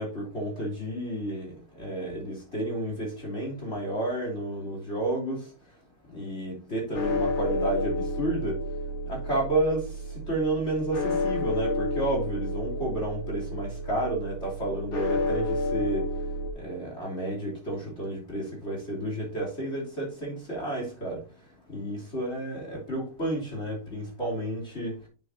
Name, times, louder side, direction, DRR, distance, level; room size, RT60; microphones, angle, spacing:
voice 1, 0.0-1.5 1.8-5.4 6.1-8.6 9.1-9.9 10.3-16.0 16.6-21.2 21.7-24.9, right 1 dB, 30° left, -2 dB, 3.3 m, -31 dB
sound 1, 6.9-16.5, left 2 dB, 70° left, 2.6 m, -31 dB
8.9 x 7.0 x 2.7 m, 0.36 s
omnidirectional pair, 2.4 m